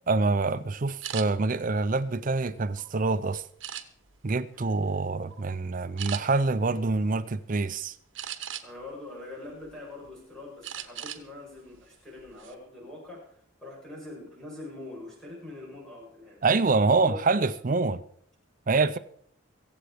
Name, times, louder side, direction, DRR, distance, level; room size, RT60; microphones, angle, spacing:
voice 1, 0.1-3.4 4.2-8.0 16.4-18.0 18.7-19.0, right 3 dB, 40° right, 0.5 m, -26 dB
sound 1, 1.0-1.3 1.9-2.9 3.6-4.2 4.7-5.0 5.3-5.5 6.0-6.2 8.2-8.9 9.4-10.1 10.6-11.2 11.6-11.8 12.2-12.5, right 10 dB, 75° right, 1.2 m, -38 dB
voice 2, 8.4-16.4 16.9-17.4, left 2 dB, 5° left, 7.3 m, -44 dB
23.0 x 8.0 x 5.0 m
head